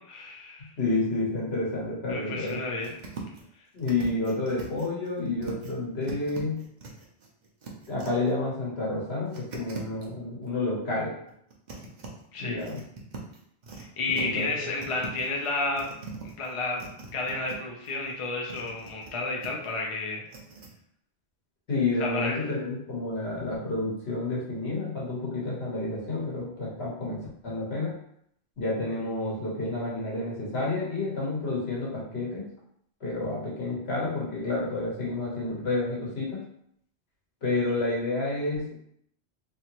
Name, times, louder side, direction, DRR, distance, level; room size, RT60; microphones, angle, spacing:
voice 1, 0.0-0.7 2.1-2.9 12.3-12.7 13.8-15.9 16.2-16.8 17.1-20.3 22.0-22.4, left 3 dB, 40° left, -1 dB, 0.5 m, -31 dB
voice 2, 0.8-2.6 3.7-6.6 7.9-11.1 12.4-12.8 14.1-14.7 21.7-27.9 28.6-32.4 33.0-36.4 37.4-38.7, left 2 dB, 70° left, -5 dB, 1.4 m, -30 dB
sound 1, 2.5-2.6 2.8-3.5 3.8-5.7 6.0-8.3 9.3-10.1 11.3-12.1 12.6-13.8 14.1-14.6 14.8-17.6 17.8-19.1 19.4-19.7 20.3-20.7, right 4 dB, 50° right, 0.7 m, -42 dB
3.2 x 2.8 x 2.9 m, 0.70 s
omnidirectional pair, 1.1 m